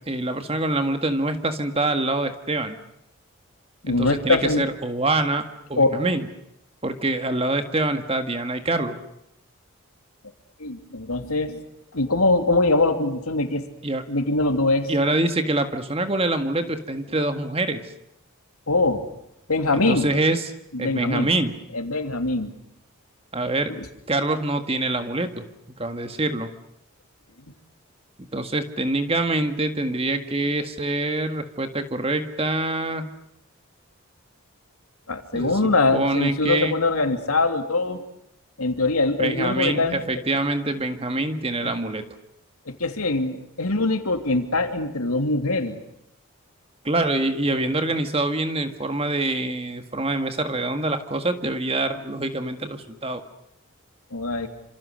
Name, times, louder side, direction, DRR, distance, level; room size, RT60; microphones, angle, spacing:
voice 1, 0.1-2.8 3.9-6.2 6.8-9.0 13.8-14.0 14.9-17.8 19.7-20.5 20.8-21.5 23.3-23.7 24.1-25.5 25.8-26.5 28.2-33.1 35.3-36.7 39.2-42.0 46.8-53.2, right 2 dB, 25° right, 8 dB, 1.8 m, -25 dB
voice 2, 3.8-4.6 5.8-6.0 10.6-11.6 11.9-13.6 14.1-14.9 18.7-19.0 19.5-20.1 20.7-21.3 21.7-22.5 23.7-23.9 35.1-38.0 38.6-40.0 41.6-41.7 42.7-45.8 54.1-54.5, left 2 dB, 85° left, 6 dB, 3.1 m, -23 dB
27.5 x 27.0 x 6.5 m, 0.80 s
head